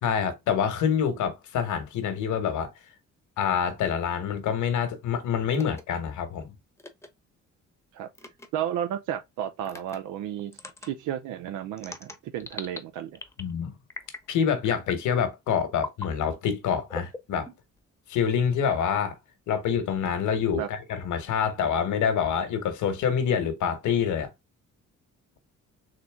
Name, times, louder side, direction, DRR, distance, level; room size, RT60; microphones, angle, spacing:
voice 1, 0.0-2.7 3.4-6.5 13.4-13.7 14.3-17.5 18.1-19.2 19.5-24.3, left 7 dB, 75° left, 1.2 m, -26 dB
sound 1, 5.5-5.8 6.8-7.1 8.1-8.5 9.6-10.0 10.5-10.9 11.8-12.8 13.1-13.5 13.9-14.3 14.6-15.0 15.8-16.1 16.9-17.8, left 3 dB, 10° left, 0.8 m, -39 dB
voice 2, 8.5-10.5 10.8-13.2 20.5-20.7, right 10 dB, 85° right, 0.5 m, -32 dB
3.9 x 3.0 x 3.4 m
cardioid pair, 90°, 30 cm